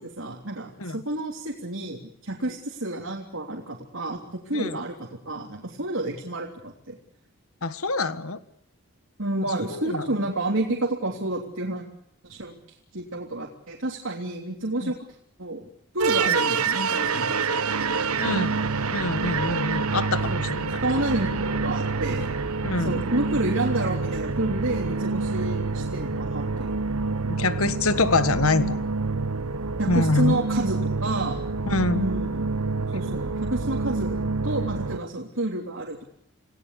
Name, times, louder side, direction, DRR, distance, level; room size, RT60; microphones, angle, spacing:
voice 1, 0.0-7.0 9.2-11.8 12.2-12.6 12.9-15.0 15.4-15.6 15.9-17.3 18.3-18.6 20.3-20.4 20.8-22.3 22.8-26.8 29.8-31.4 31.9-32.5 32.9-34.2 34.4-36.0, right 2 dB, 65° right, 0 dB, 3.2 m, -29 dB
voice 2, 7.6-8.4 9.7-10.1 14.8-14.9 16.3-16.4 18.2-18.6 18.9-20.8 22.6-23.0 27.3-28.8 29.9-30.4 31.7-32.0, left 3 dB, 80° left, 12 dB, 1.6 m, -25 dB
sound 1, 16.0-35.0, right 4 dB, 85° right, 1.1 m, -27 dB
28.5 x 18.5 x 8.3 m, 0.71 s
head